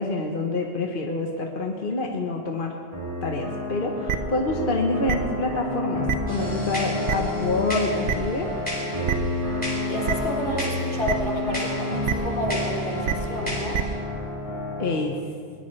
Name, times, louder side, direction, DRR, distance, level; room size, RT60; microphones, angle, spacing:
voice 1, 0.0-2.8 3.2-8.5 14.8-15.2, left 2 dB, 50° left, 1 dB, 1.3 m, -27 dB
sound 1, 2.9-14.9, left 1 dB, 30° right, 4.5 m, -30 dB
sound 2, 4.1-4.2 5.1-5.2 6.1-6.2 7.1-7.2 8.1-8.2 9.1-9.2 10.1-10.2 11.1-11.2 12.0-12.1 13.0-13.1 13.7-13.8, right 9 dB, 80° right, 1.1 m, -24 dB
sound 3, 6.3-13.9, left 1 dB, 5° left, 4.2 m, -37 dB
voice 2, 9.9-13.8, left 1 dB, 75° left, -3 dB, 3.3 m, -30 dB
21.5 x 19.5 x 3.3 m, 2.2 s
omnidirectional pair, 1.2 m